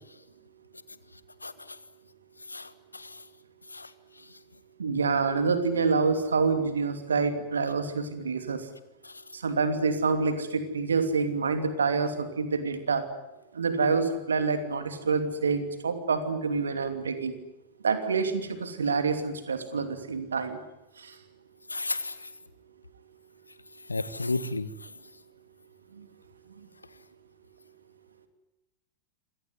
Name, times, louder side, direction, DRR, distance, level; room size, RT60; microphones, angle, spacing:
voice 1, 1.4-1.8 2.5-3.2 3.7-3.9 9.0-9.1 21.7-22.3 23.9-24.7, left 3 dB, 80° left, 15 dB, 1.5 m, -33 dB
voice 2, 4.8-8.6 9.3-13.0 13.5-17.4 17.8-20.6, right 4 dB, 70° right, 9 dB, 2.8 m, -27 dB
26.5 x 18.5 x 9.7 m, 0.95 s
figure-of-eight pair, 90°, 0 cm